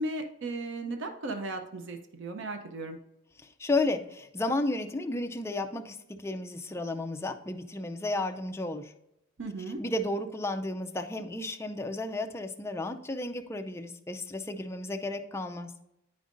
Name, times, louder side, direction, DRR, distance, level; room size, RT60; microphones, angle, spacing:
voice 1, 0.0-3.0 9.4-9.8, right 2 dB, 60° right, 5 dB, 0.6 m, -36 dB
voice 2, 3.6-8.9 9.8-15.7, left 2 dB, 15° left, 5 dB, 0.4 m, -33 dB
9.3 x 5.2 x 2.5 m, 0.84 s
head